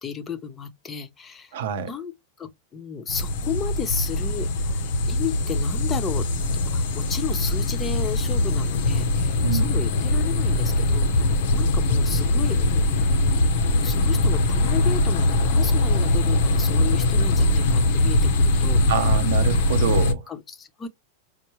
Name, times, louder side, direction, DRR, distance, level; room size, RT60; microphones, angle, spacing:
voice 1, 0.0-1.5 1.9-2.1 2.4-6.3 6.6-11.3 11.5-12.9 13.8-18.8 20.3-20.9, left 7 dB, 25° left, 0.7 m, -33 dB
voice 2, 1.5-1.9 9.4-9.8 18.9-20.2, right 8 dB, 75° right, 0.8 m, -26 dB
sound 1, 3.1-20.1, left 2 dB, 70° left, 0.7 m, -21 dB
4.4 x 2.1 x 3.0 m
hypercardioid pair, 115°, 0 cm